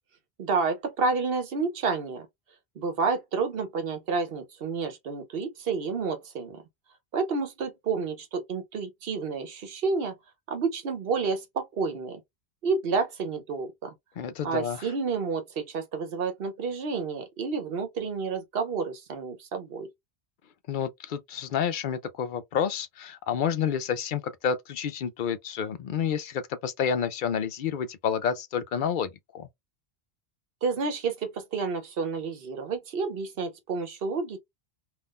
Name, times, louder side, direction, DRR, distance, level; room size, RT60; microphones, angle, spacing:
voice 1, 0.4-2.3 2.8-6.6 7.1-10.1 10.5-12.2 12.6-13.9 14.4-19.9 30.6-34.4, right 4 dB, 65° right, 1.0 m, -30 dB
voice 2, 14.2-14.9 20.7-29.5, left 7 dB, 60° left, 0.6 m, -29 dB
3.6 x 2.4 x 2.4 m
omnidirectional pair, 1.1 m